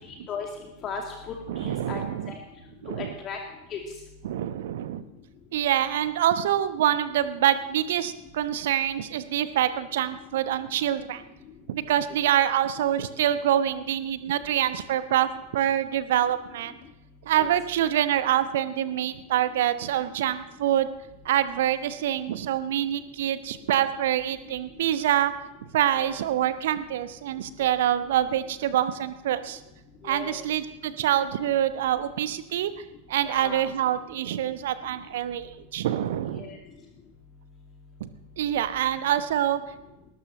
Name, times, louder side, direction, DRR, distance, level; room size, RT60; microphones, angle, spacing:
voice 1, 0.1-0.5 0.8-2.0 2.9-3.4 3.7-3.8 17.4-17.5 26.0-26.2 27.6-27.7 30.0-30.4 33.2-33.6 36.4-36.6, left 6 dB, 30° left, 1 dB, 2.3 m, -36 dB
voice 2, 1.5-2.3 2.8-3.1 4.2-5.0 5.5-11.2 11.7-16.7 17.2-20.9 21.2-25.3 25.7-29.6 30.0-36.5 38.0-38.1 38.4-39.6, right 11 dB, 55° right, 12 dB, 1.1 m, -26 dB
21.0 x 18.0 x 3.2 m, 0.94 s
figure-of-eight pair, 90°, 0 cm